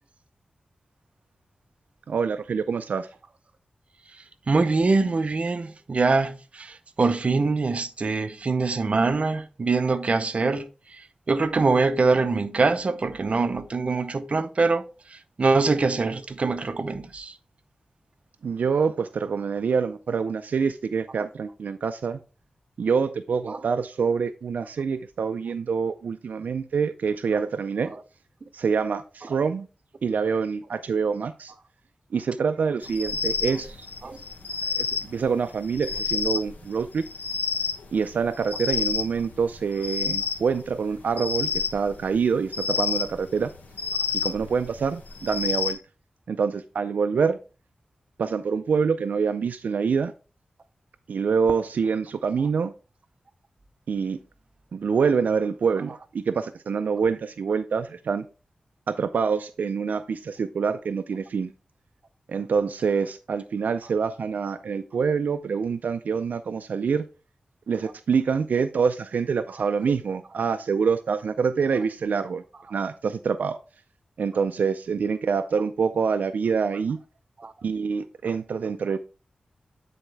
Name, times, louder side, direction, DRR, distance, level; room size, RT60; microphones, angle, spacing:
voice 1, 2.1-3.1 18.4-22.2 22.8-27.9 28.5-29.7 30.0-31.5 32.1-33.9 34.8-37.0 37.9-43.5 44.2-45.8 46.3-47.4 48.2-50.1 51.1-52.7 53.9-54.2 54.7-58.3 58.9-61.5 62.3-67.0 67.7-72.4 72.7-73.6 74.2-77.0 77.6-79.0, right 5 dB, 80° right, 0.4 m, -26 dB
voice 2, 4.5-10.7 11.3-14.8 15.4-17.3 23.5-23.6 34.0-34.2 77.4-77.5, right 3 dB, 50° right, 0.7 m, -23 dB
sound 1, 32.8-45.7, left 5 dB, 85° left, 1.3 m, -30 dB
9.0 x 4.2 x 3.3 m
wide cardioid pair, 95°, 3 cm